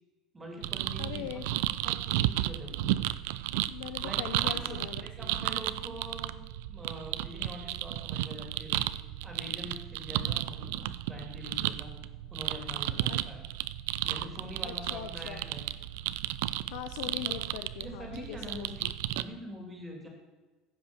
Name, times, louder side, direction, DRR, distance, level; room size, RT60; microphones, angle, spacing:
voice 1, 0.3-1.4 1.8-3.0 4.0-8.8 9.2-11.9 12.3-13.4 14.0-15.6 17.2-17.4 17.8-18.9 19.1-20.1, equal, 15° right, 2 dB, 2.7 m, -44 dB
sound 1, 0.6-19.2, right 15 dB, 90° right, 0.4 m, -33 dB
voice 2, 1.0-1.5 3.7-5.3 13.1-13.2 14.6-15.5 16.7-19.0, left 12 dB, 80° left, 8 dB, 0.6 m, -41 dB
15.0 x 5.8 x 7.0 m, 1.2 s
cardioid pair, 155°, 0 cm